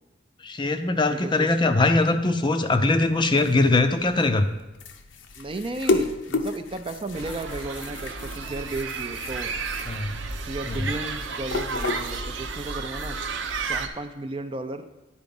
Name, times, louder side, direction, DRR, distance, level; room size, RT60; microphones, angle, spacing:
voice 1, 0.4-4.5 9.9-10.1 10.7-10.8, left 2 dB, 25° left, 8 dB, 0.5 m, -21 dB
voice 2, 1.1-1.5 5.4-9.5 10.5-13.2 13.7-14.9, right 2 dB, 30° right, 8 dB, 0.5 m, -34 dB
sound 1, 3.0-12.6, left 3 dB, 80° left, 0.7 m, -33 dB
sound 2, 7.1-13.9, right 4 dB, 85° right, 0.7 m, -32 dB
10.5 x 4.9 x 5.3 m, 1.1 s
head